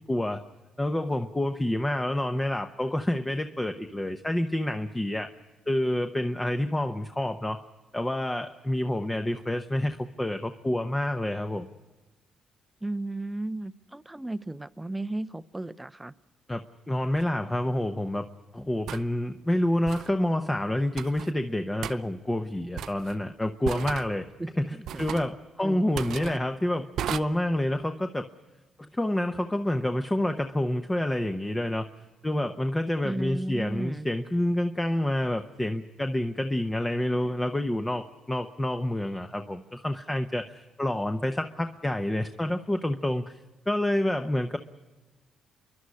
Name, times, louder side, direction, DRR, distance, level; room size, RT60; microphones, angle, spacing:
voice 1, 0.1-0.4 0.8-5.3 5.7-7.6 7.9-11.7 16.5-16.6 16.9-18.3 18.5-24.3 24.6-28.2 28.9-31.9 32.2-43.4 43.7-44.6, left 1 dB, 15° left, 7 dB, 0.9 m, -28 dB
voice 2, 12.8-16.1 24.4-24.5 25.6-26.4 33.0-34.1, right 2 dB, 10° right, 15 dB, 0.6 m, -34 dB
sound 1, 17.2-17.3 18.9-19.1 19.9-20.1 21.0-21.3 21.8-22.0 22.8-23.2 23.6-24.1 24.9-25.3 26.0-26.4 27.0-27.2, right 10 dB, 75° right, 0.6 m, -34 dB
29.0 x 11.5 x 9.7 m, 1.2 s
cardioid pair, 90°, 0 cm